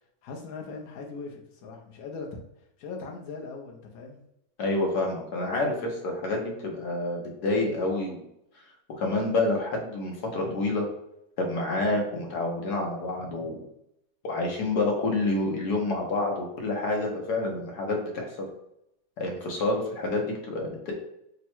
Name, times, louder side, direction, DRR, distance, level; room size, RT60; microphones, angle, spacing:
voice 1, 0.2-2.3 2.8-4.2, left 4 dB, 70° left, 1 dB, 1.2 m, -40 dB
voice 2, 4.6-8.2 8.9-10.9 11.4-13.6 14.2-18.4 19.2-20.9, left 2 dB, 85° left, 0 dB, 1.4 m, -28 dB
3.6 x 2.1 x 4.3 m, 0.80 s
omnidirectional pair, 1.6 m